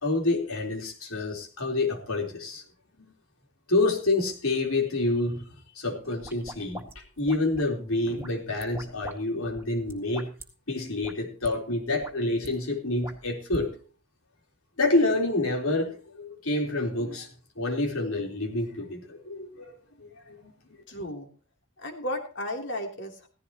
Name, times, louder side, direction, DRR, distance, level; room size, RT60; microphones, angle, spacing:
voice 1, 0.0-2.6 3.0-3.1 3.7-5.4 5.7-10.3 10.7-13.7 14.8-17.3 17.6-20.5, left 2 dB, 75° left, 1 dB, 4.1 m, -28 dB
sound 1, 6.0-7.7 8.2-9.2 9.4-10.4 11.0-11.1 11.4-11.5 11.9-12.5 13.0-13.6, equal, 10° right, 1.9 m, -42 dB
voice 2, 20.9-21.3 21.8-23.3, left 1 dB, 55° left, 2 dB, 3.3 m, -34 dB
16.5 x 15.0 x 3.0 m, 0.37 s
head